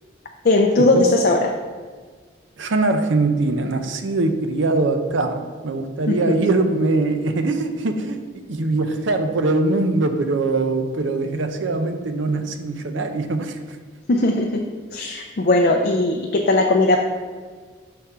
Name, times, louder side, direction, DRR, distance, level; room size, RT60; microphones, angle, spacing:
voice 1, 0.4-1.5 6.1-6.4 14.1-14.7 14.9-17.0, left 2 dB, 50° left, 2 dB, 0.4 m, -18 dB
voice 2, 2.6-13.8, right 2 dB, 75° right, 7 dB, 0.5 m, -22 dB
5.7 x 3.7 x 5.5 m, 1.5 s
head